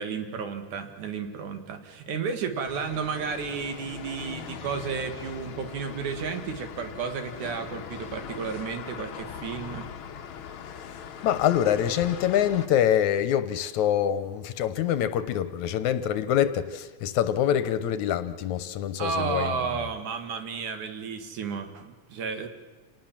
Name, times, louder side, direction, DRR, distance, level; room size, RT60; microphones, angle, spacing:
voice 1, 0.0-9.9 19.0-22.5, right 6 dB, 75° right, 7 dB, 3.4 m, -32 dB
sound 1, 2.6-12.7, left 8 dB, 55° left, 1.6 m, -41 dB
voice 2, 10.7-19.5, left 10 dB, 75° left, 13 dB, 2.2 m, -25 dB
28.0 x 19.0 x 7.4 m, 1.3 s
omnidirectional pair, 3.6 m